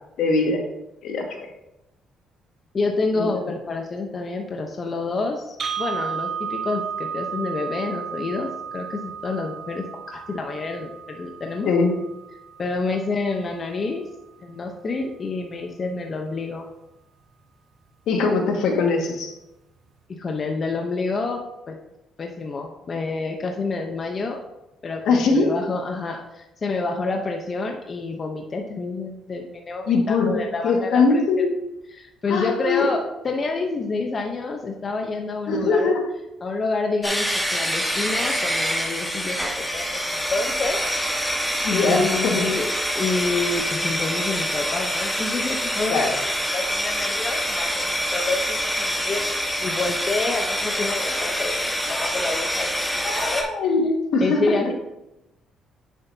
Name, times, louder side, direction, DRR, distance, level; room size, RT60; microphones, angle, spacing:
voice 1, 0.2-0.6 1.0-1.5 3.2-3.5 11.6-11.9 18.1-19.4 25.1-25.5 29.9-30.3 30.6-31.5 32.3-32.9 35.5-36.0 41.6-42.5 45.9-46.1 53.0-54.7, left 4 dB, 75° left, 2 dB, 1.9 m, -21 dB
voice 2, 2.7-11.7 12.6-14.0 14.4-16.7 20.1-21.8 22.2-24.4 24.8-31.2 31.9-33.0 33.2-35.9 36.4-37.3 37.5-40.9 41.7-46.2 46.5-49.3 49.6-52.7 53.0-53.4 54.2-54.7, left 3 dB, 40° left, 2 dB, 1.0 m, -28 dB
sound 1, 5.6-13.6, right 7 dB, 50° right, 0.9 m, -34 dB
sound 2, 37.0-53.4, equal, 10° left, 2.6 m, -26 dB
9.8 x 7.4 x 2.9 m, 0.92 s
cardioid pair, 90°, 0 cm